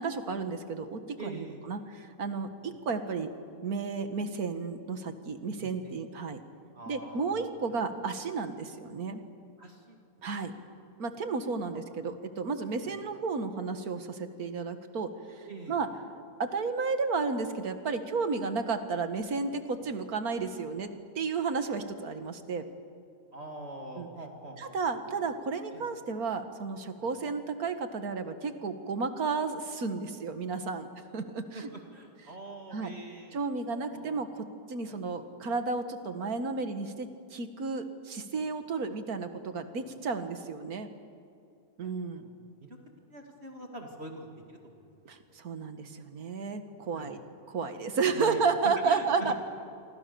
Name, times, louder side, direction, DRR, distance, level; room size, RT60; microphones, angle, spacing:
voice 1, 0.0-3.3 3.6-6.4 6.9-9.2 10.2-10.5 11.0-15.9 16.4-20.9 21.2-22.7 24.0-24.1 24.6-30.9 31.1-31.7 32.7-32.9 33.3-40.9 41.8-42.3 45.1-47.2 47.5-49.3, right 4 dB, 75° right, 8 dB, 2.0 m, -32 dB
voice 2, 1.2-1.6 2.6-2.7 5.6-6.0 6.7-7.4 9.6-10.0 11.7-11.8 12.8-13.0 15.5-15.8 23.3-24.8 25.2-25.3 25.7-25.8 27.0-27.1 31.5-33.4 33.7-34.2 34.9-35.0 39.5-39.8 41.8-42.3 42.6-42.8 43.1-44.8 46.9-47.1 48.1-49.3, right 2 dB, 45° right, 2 dB, 2.7 m, -44 dB
28.0 x 24.5 x 6.9 m, 2.4 s
omnidirectional pair, 1.6 m